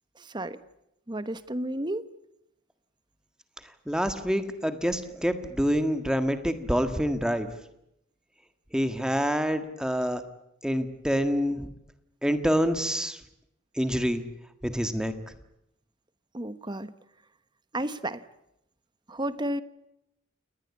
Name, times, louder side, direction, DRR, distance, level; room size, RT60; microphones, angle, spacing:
voice 1, 1.1-2.0 16.3-16.9 17.7-18.2 19.1-19.6, right 1 dB, 20° right, 13 dB, 1.0 m, -31 dB
voice 2, 3.9-7.5 8.7-10.2 10.6-11.7 12.2-13.2 13.7-14.2 14.6-15.1, equal, 5° right, 8 dB, 1.7 m, -26 dB
29.0 x 20.0 x 8.4 m, 0.82 s
head